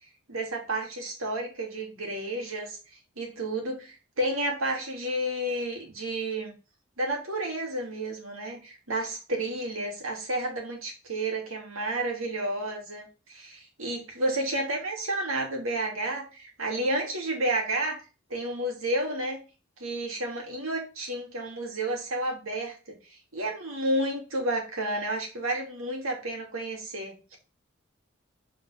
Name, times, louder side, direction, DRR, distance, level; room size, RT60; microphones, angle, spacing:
voice 1, 0.3-2.8 3.2-6.5 7.0-18.0 18.3-19.4 19.8-23.0 23.3-27.4, right 1 dB, 80° right, 1 dB, 2.8 m, -31 dB
6.2 x 4.6 x 6.4 m, 0.32 s
head